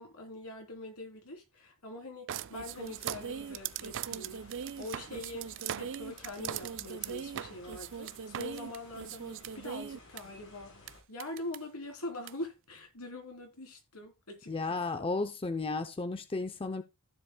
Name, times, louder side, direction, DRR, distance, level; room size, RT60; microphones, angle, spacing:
voice 1, 0.0-15.1, left 2 dB, 90° left, 3.4 m, -44 dB
sound 1, 2.3-10.2 10.9-11.0 11.2-11.6 12.3-12.4, right 8 dB, 55° right, 0.4 m, -39 dB
sound 2, 2.7-11.0, left 2 dB, 70° left, 7.0 m, -56 dB
voice 2, 14.5-16.8, left 3 dB, 25° left, 0.6 m, -33 dB
15.5 x 7.2 x 2.2 m
head